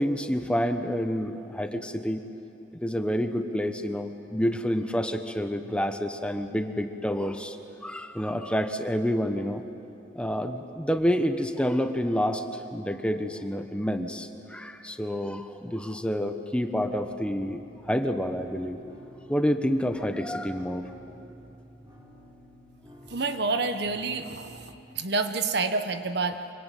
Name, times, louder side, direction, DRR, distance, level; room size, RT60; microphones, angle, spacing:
voice 1, 0.0-2.2 2.7-7.6 7.8-9.6 10.1-18.8 19.3-20.9, equal, 5° left, 7 dB, 1.1 m, -28 dB
sound 1, 16.8-24.8, equal, 20° right, 3.6 m, -51 dB
voice 2, 23.1-24.6 24.9-26.4, right 4 dB, 65° right, 8 dB, 1.4 m, -28 dB
25.0 x 24.5 x 9.3 m, 3.0 s
head